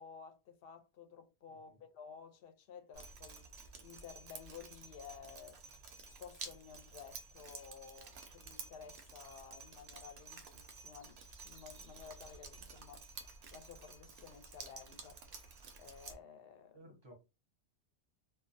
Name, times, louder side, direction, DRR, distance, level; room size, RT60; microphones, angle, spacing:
voice 1, 0.0-3.5 3.8-5.6 6.0-13.0 13.5-15.2 15.8-17.1, left 7 dB, 65° left, 0.7 m, -54 dB
Drip, 2.9-16.1, right 5 dB, 70° right, 0.8 m, -52 dB
voice 2, 16.7-17.1, right 1 dB, 30° right, 0.6 m, -58 dB
2.3 x 2.2 x 2.5 m
omnidirectional pair, 1.2 m